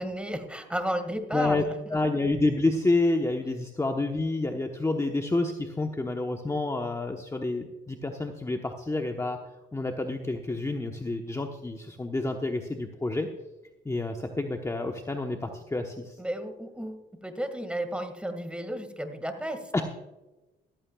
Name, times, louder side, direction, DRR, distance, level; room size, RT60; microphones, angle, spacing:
voice 1, 0.0-1.8 16.2-19.8, equal, 5° right, 7 dB, 1.9 m, -33 dB
voice 2, 1.3-9.4 9.7-13.3 13.8-16.2 19.7-19.8, left 2 dB, 15° left, 4 dB, 1.0 m, -29 dB
14.5 x 14.0 x 2.3 m, 1.0 s
cardioid pair, 90°, 20 cm